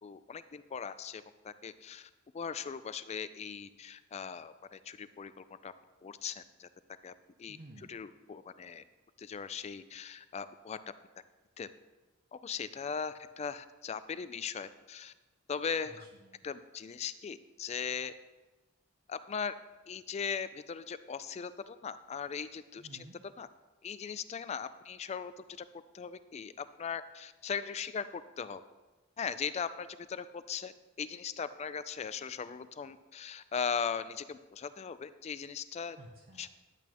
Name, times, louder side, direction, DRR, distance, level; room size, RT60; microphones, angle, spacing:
voice 1, 0.0-5.7 6.0-6.7 7.0-7.1 7.4-7.6 7.9-8.8 9.2-10.8 11.6-11.7 12.3-15.1 15.5-16.0 16.4-18.1 19.1-19.5 19.9-23.1 23.4-23.5 23.8-25.6 25.9-28.6 29.2-30.7 31.0-36.0 36.4-36.5, left 6 dB, 30° left, 14 dB, 0.3 m, -39 dB
voice 2, 7.5-8.0 15.8-16.4 22.8-23.2 36.0-36.4, right 1 dB, 50° right, -1 dB, 0.8 m, -53 dB
10.5 x 8.2 x 3.0 m, 1.2 s
head